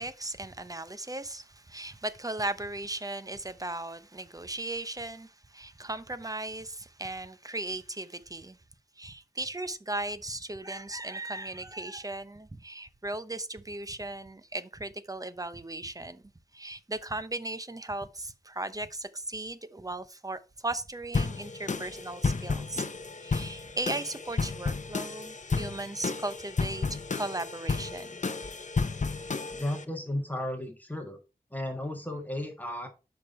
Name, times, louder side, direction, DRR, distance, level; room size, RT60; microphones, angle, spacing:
voice 1, 0.0-8.6 9.0-16.2 16.5-22.9 23.2-26.9 27.1-28.2, right 2 dB, 20° right, 0.8 m, -37 dB
sound 1, 21.1-29.8, left 4 dB, 50° left, 0.7 m, -32 dB
voice 2, 29.5-31.2 31.5-32.9, left 1 dB, 10° left, 1.5 m, -34 dB
6.6 x 5.3 x 4.3 m
wide cardioid pair, 55°, 16 cm